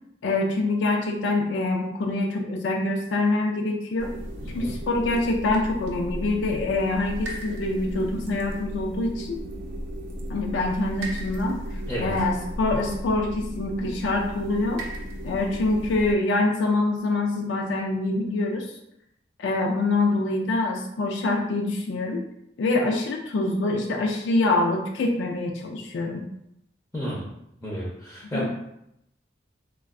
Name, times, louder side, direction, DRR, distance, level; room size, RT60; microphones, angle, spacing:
voice 1, 0.2-4.1 4.5-9.4 10.3-11.6 12.0-14.8 15.2-18.7 19.4-22.2 22.6-26.3 28.3-28.5, left 2 dB, 80° left, 1 dB, 0.4 m, -25 dB
sound 1, 4.0-16.1, equal, 80° right, 0.5 m, -35 dB
voice 2, 26.9-27.3 27.6-28.5, equal, 10° left, -6 dB, 0.5 m, -32 dB
2.3 x 2.2 x 3.5 m, 0.81 s
head